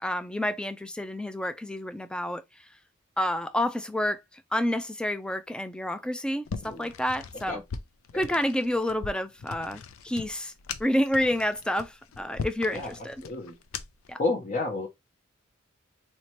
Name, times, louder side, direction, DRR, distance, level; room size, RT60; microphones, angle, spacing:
voice 1, 0.0-2.4 3.2-7.6 8.1-10.5 10.8-13.2 14.1-14.2, left 1 dB, 5° left, 0.3 m, -29 dB
sound 1, 6.5-14.1, left 5 dB, 90° left, 0.5 m, -40 dB
voice 2, 12.7-13.5 14.2-14.9, left 3 dB, 40° left, 0.7 m, -32 dB
4.2 x 2.7 x 3.0 m
head